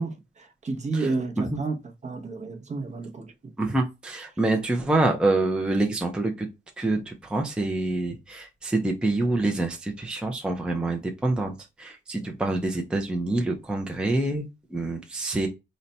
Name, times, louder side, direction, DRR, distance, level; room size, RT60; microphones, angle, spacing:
voice 1, 0.0-1.8 2.0-3.3, right 3 dB, 35° right, 0.7 m, -30 dB
voice 2, 3.6-6.5 6.8-15.5, right 2 dB, 5° right, 0.5 m, -26 dB
4.0 x 2.2 x 4.0 m
wide cardioid pair, 130°, 21 cm